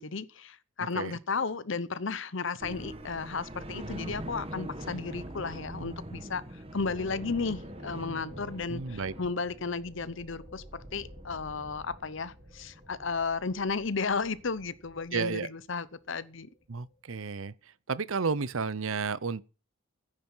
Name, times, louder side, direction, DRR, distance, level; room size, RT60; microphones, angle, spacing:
voice 1, 0.0-10.6 10.9-16.5, left 4 dB, 65° left, 0.8 m, -34 dB
sound 1, 2.6-15.1, right 1 dB, 25° right, 1.4 m, -44 dB
sound 2, 6.2-17.5, left 2 dB, ahead, 4.4 m, -57 dB
voice 2, 8.7-9.1 15.1-15.5 16.7-17.5 17.9-19.4, right 5 dB, 75° right, 0.7 m, -32 dB
14.0 x 10.0 x 5.6 m
head